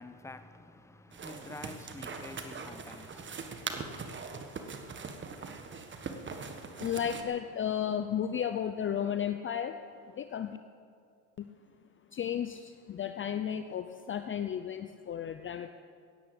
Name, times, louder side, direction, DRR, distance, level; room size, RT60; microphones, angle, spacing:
voice 1, 0.0-3.9, left 2 dB, 5° left, 0.9 m, -48 dB
sound 1, 1.1-7.2, right 4 dB, 25° right, 1.6 m, -41 dB
voice 2, 6.8-9.8 10.1-10.6 11.4-11.5 12.1-15.7, left 9 dB, 30° left, 0.7 m, -33 dB
16.5 x 10.0 x 8.2 m
supercardioid pair, 100°, 44 cm